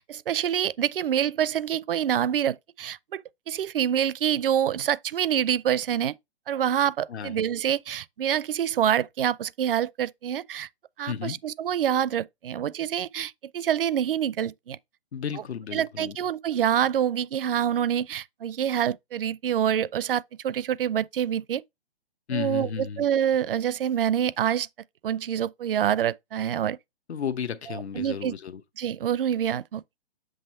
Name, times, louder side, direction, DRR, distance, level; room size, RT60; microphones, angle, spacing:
voice 1, 0.0-3.2 3.5-6.1 6.5-10.7 11.0-14.8 15.7-21.6 22.3-24.7 25.0-26.8 27.7-28.3 28.8-29.8, right 9 dB, 60° right, 0.5 m, -26 dB
voice 2, 11.1-11.4 15.1-16.2 22.3-23.0 27.1-28.6, left 7 dB, 85° left, 0.9 m, -33 dB
7.9 x 3.1 x 4.2 m
hypercardioid pair, 160°, 32 cm